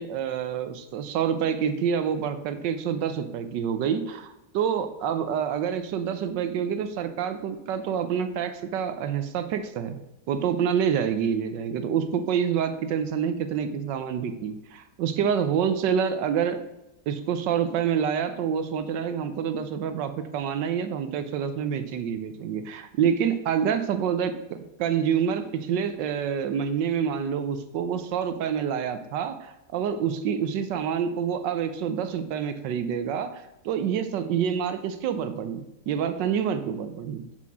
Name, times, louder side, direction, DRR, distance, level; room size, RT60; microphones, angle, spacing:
voice 1, 0.0-16.6 17.1-24.3 24.8-37.2, right 8 dB, 80° right, 9 dB, 1.3 m, -27 dB
5.8 x 5.8 x 6.1 m, 0.94 s
omnidirectional pair, 1.9 m